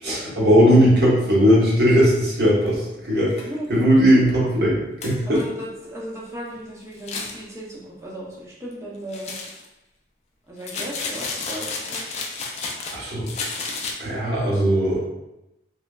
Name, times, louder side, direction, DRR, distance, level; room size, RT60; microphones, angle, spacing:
voice 1, 0.0-4.8 5.0-5.4 12.9-13.3 14.0-15.0, equal, 60° right, -6 dB, 0.9 m, -18 dB
sound 1, 2.7-2.8 3.3-3.4 3.8-3.9 4.3-4.4 5.0-5.4 6.9-7.4 9.1-9.7 10.6-13.0 13.2-13.9, left 4 dB, 35° left, 0.3 m, -31 dB
voice 2, 3.1-3.9 5.3-9.4 10.5-12.1, equal, 15° right, -5 dB, 0.6 m, -36 dB
3.3 x 2.0 x 2.2 m, 0.93 s
head